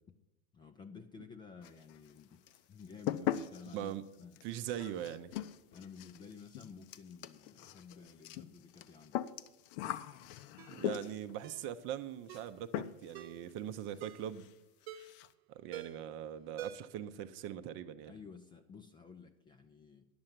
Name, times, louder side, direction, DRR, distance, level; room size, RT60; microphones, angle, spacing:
voice 1, 0.5-3.9 4.2-4.4 5.7-9.2 18.1-20.1, left 5 dB, 15° left, 7 dB, 0.4 m, -53 dB
sound 1, 1.6-2.2 2.5-11.4 12.3-12.5 12.7-13.2 13.5-13.6 14.0-14.1 14.3-14.5 14.8-15.3, left 12 dB, 50° left, 0.7 m, -41 dB
voice 2, 4.4-5.3 10.7-14.5 15.5-18.1, right 10 dB, 35° right, 11 dB, 0.7 m, -41 dB
Ringtone, 10.6-10.8 11.4-11.7 12.3-12.5 13.1-13.4 14.0-14.3 14.9-15.2 15.7-16.1 16.6-17.0 17.3-17.4, right 10 dB, 65° right, 0.9 m, -47 dB
10.5 x 6.6 x 7.4 m, 0.92 s
hypercardioid pair, 130°, 34 cm